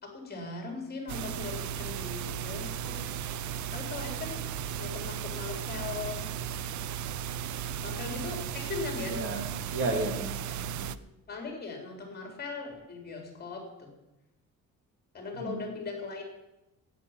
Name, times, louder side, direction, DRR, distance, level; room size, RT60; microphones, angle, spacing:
voice 1, 0.0-3.0 3.7-4.4 4.8-6.2 7.8-9.2 11.3-13.9 15.1-16.2, left 4 dB, 30° left, 3 dB, 4.1 m, -39 dB
sound 1, 1.1-11.0, right 8 dB, 65° right, 0.7 m, -35 dB
voice 2, 9.0-10.9 15.3-15.6, right 2 dB, 45° right, 3 dB, 2.8 m, -34 dB
12.5 x 9.4 x 9.1 m, 0.98 s
cardioid pair, 155°, 32 cm